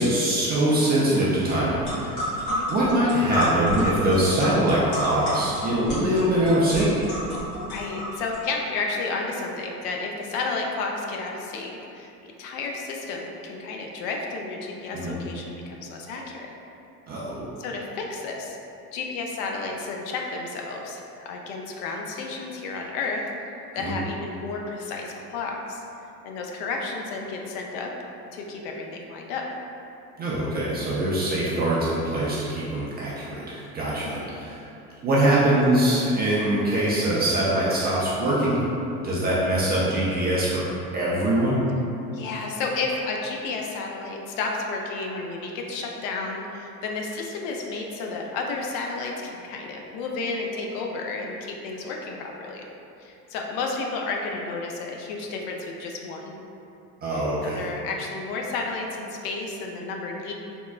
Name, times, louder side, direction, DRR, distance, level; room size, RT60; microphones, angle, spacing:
voice 1, 0.0-2.4 2.7-6.9 14.9-15.2 17.1-17.5 23.8-24.0 30.2-34.6 35.0-38.6 39.0-40.7 40.9-41.6 57.0-57.6, right 1 dB, 25° right, -7 dB, 0.3 m, -23 dB
sound 1, 1.5-1.6 1.8-8.4, equal, 80° left, 1.5 m, -30 dB
voice 2, 7.7-16.5 17.6-18.6 18.9-23.2 23.7-25.8 26.2-27.9 28.3-29.4 34.0-34.3 42.1-52.6 53.0-56.3 57.1-60.3, left 3 dB, 60° left, 0 dB, 0.5 m, -32 dB
3.5 x 2.0 x 2.3 m, 2.8 s
hypercardioid pair, 75°, 47 cm